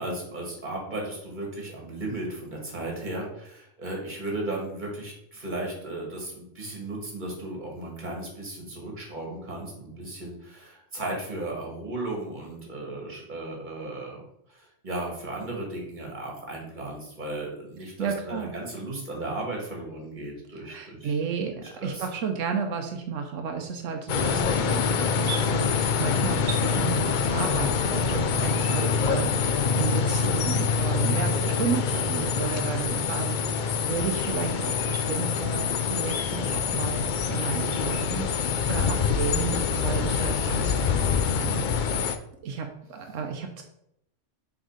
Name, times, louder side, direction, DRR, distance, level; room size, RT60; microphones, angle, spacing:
voice 1, 0.0-14.2 14.5-21.2 21.8-22.0, right 2 dB, 40° right, -1 dB, 1.9 m, -35 dB
voice 2, 18.0-18.5 20.5-38.3 38.6-41.6 42.4-43.6, right 6 dB, 85° right, 4 dB, 1.1 m, -32 dB
sound 1, 24.1-42.2, left 6 dB, 60° left, 0.5 m, -25 dB
6.3 x 3.5 x 5.0 m, 0.75 s
omnidirectional pair, 1.3 m